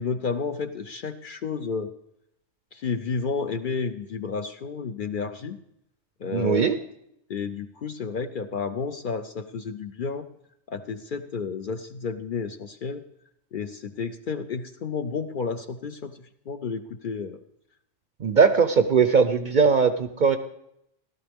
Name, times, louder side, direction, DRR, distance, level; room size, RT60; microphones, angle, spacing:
voice 1, 0.0-1.9 2.7-5.6 6.2-6.8 7.3-10.3 10.7-13.0 13.5-17.4, left 5 dB, 55° left, 9 dB, 0.6 m, -31 dB
voice 2, 6.3-6.7 18.2-20.4, right 5 dB, 55° right, 9 dB, 0.6 m, -20 dB
15.5 x 12.0 x 3.5 m, 0.78 s
omnidirectional pair, 1.3 m